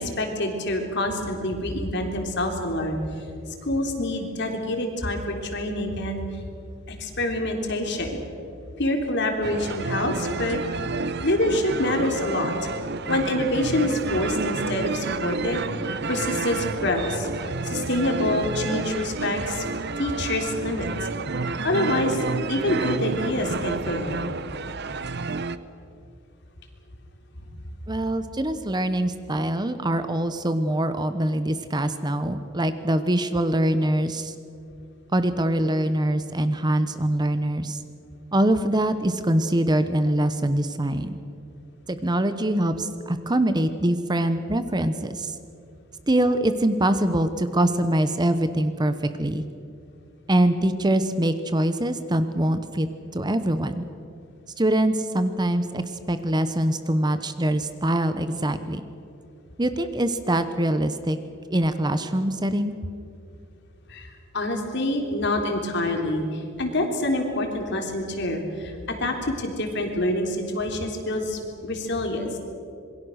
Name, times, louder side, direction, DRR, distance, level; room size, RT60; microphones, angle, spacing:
voice 1, 0.0-3.2 3.6-6.4 6.9-8.2 8.8-10.6 11.2-12.5 13.1-19.6 20.0-20.9 21.5-22.2 22.5-24.2 63.9-64.1 64.3-72.4, left 1 dB, 60° left, 3 dB, 3.5 m, -26 dB
sound 1, 9.4-25.6, right 3 dB, 55° right, 0.8 m, -30 dB
voice 2, 27.9-34.3 35.1-37.8 38.3-41.2 41.9-45.3 46.1-49.4 50.3-52.9 53.1-53.8 54.6-58.8 59.6-61.2 61.5-62.7, right 1 dB, 20° right, 10 dB, 0.9 m, -23 dB
26.5 x 22.5 x 6.5 m, 2.5 s
head